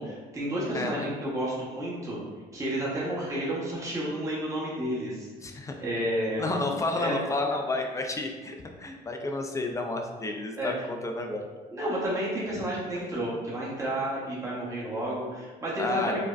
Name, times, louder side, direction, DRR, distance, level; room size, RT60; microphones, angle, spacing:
voice 1, 0.0-2.2 2.5-5.3 5.8-6.5 6.9-7.2 10.6-10.7 11.7-16.2, right 1 dB, 20° right, -7 dB, 1.1 m, -31 dB
voice 2, 0.7-1.1 5.4-5.9 6.4-11.4 15.8-16.2, left 2 dB, 20° left, 3 dB, 0.4 m, -31 dB
4.8 x 2.1 x 2.5 m, 1.4 s
cardioid pair, 110°, 17 cm